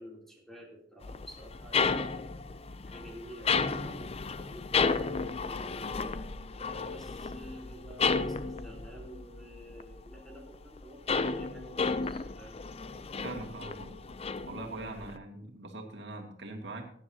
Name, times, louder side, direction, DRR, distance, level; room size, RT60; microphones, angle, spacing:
voice 1, 0.0-2.2 2.9-5.9 6.5-12.6, equal, ahead, -1 dB, 3.3 m, -50 dB
sound 1, 1.0-10.2 10.5-15.2, left 4 dB, 35° left, 0.6 m, -33 dB
voice 2, 13.2-13.9 14.5-16.8, right 2 dB, 80° right, 2 dB, 2.4 m, -42 dB
18.0 x 10.5 x 2.9 m, 0.63 s
head